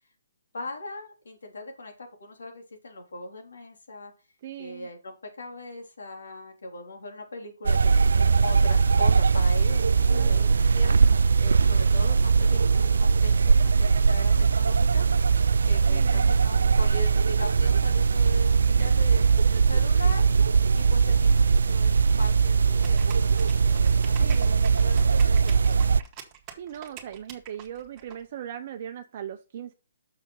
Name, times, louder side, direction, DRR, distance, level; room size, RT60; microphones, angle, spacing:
voice 1, 0.5-4.1 4.6-15.1 15.6-20.3 20.7-23.3 23.6-26.0, left 2 dB, 80° left, 1 dB, 3.3 m, -40 dB
voice 2, 4.4-4.9 10.1-10.5 15.9-16.3 18.8-19.0 19.5-19.6 19.9-20.1 24.2-24.7 26.6-29.7, right 10 dB, 45° right, 6 dB, 0.7 m, -39 dB
sound 1, 7.7-26.0, right 5 dB, 75° right, 0.3 m, -20 dB
sound 2, 22.8-28.1, right 8 dB, 20° right, 1.8 m, -45 dB
6.6 x 6.1 x 5.5 m, 0.33 s
hypercardioid pair, 150°, 0 cm